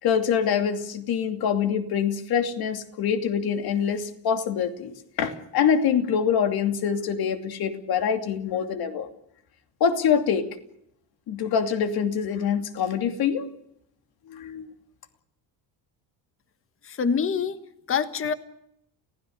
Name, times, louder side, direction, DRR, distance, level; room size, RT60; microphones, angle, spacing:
voice 1, 0.0-9.1 9.8-10.5 11.3-13.5 14.3-14.7, left 7 dB, 55° left, 7 dB, 2.8 m, -25 dB
voice 2, 16.8-17.6 17.9-18.3, left 6 dB, 30° left, 11 dB, 1.5 m, -25 dB
30.0 x 16.5 x 6.6 m, 0.76 s
cardioid pair, 125°, 43 cm